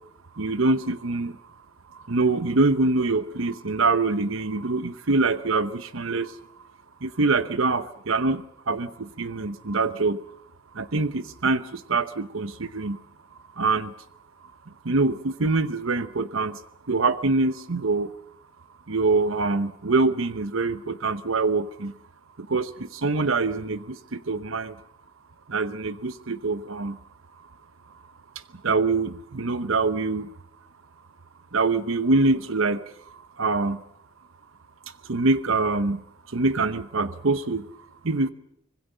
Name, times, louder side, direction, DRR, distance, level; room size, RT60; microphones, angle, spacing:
voice 1, 0.4-1.3 2.1-6.3 7.0-8.4 8.7-10.2 10.8-11.6 11.9-13.0 13.6-13.9 14.9-16.6 16.9-18.1 18.9-21.9 22.5-23.8 24.1-24.7 25.5-27.0 28.6-30.3 31.5-32.8 33.4-33.8 35.1-36.0 36.3-37.6 38.0-38.3, right 3 dB, 70° right, 13 dB, 1.0 m, -24 dB
25.5 x 21.0 x 6.8 m, 0.74 s
head